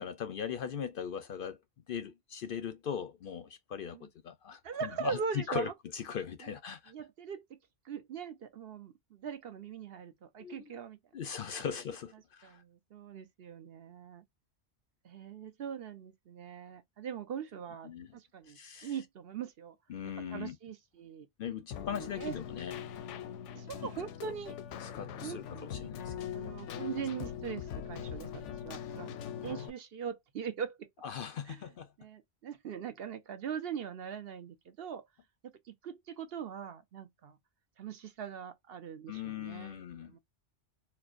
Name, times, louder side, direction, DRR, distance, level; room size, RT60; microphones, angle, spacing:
voice 1, 0.0-1.6 1.9-6.9 10.4-10.7 11.1-12.6 17.8-18.1 18.5-18.9 19.9-20.5 21.4-22.8 23.8-23.9 24.2-24.3 24.8-26.1 31.0-31.9 39.1-40.1, left 8 dB, 60° left, 0.6 m, -39 dB
voice 2, 4.6-5.7 6.4-6.5 6.9-7.4 7.8-11.0 12.4-14.2 15.0-19.8 20.3-21.3 21.9-22.4 23.6-24.6 25.2-25.9 26.3-29.1 29.4-30.9 31.4-31.6 32.0-35.0 35.7-37.4 37.8-40.2, right 7 dB, 60° right, 0.9 m, -41 dB
Keyboard (musical), 21.7-29.7, left 9 dB, 90° left, 0.9 m, -42 dB
4.4 x 2.1 x 2.4 m
omnidirectional pair, 1.2 m